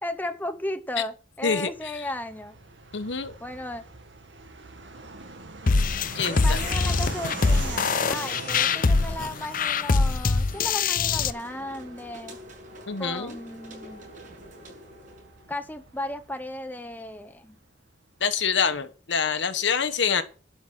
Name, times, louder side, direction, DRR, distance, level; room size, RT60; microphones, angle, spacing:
voice 1, 0.0-2.6 3.4-3.8 6.2-12.4 13.0-14.1 15.5-17.6, left 1 dB, 10° left, 0.8 m, -35 dB
Fixed-wing aircraft airplane, 1.4-17.6, right 3 dB, 75° right, 1.9 m, -42 dB
voice 2, 2.9-3.3 6.1-6.6 12.9-13.4 18.2-20.2, left 6 dB, 80° left, 1.3 m, -26 dB
sound 1, 5.7-11.3, left 4 dB, 50° left, 0.7 m, -23 dB
sound 2, 10.1-15.5, equal, 45° right, 6.8 m, -47 dB
11.5 x 6.0 x 7.5 m
head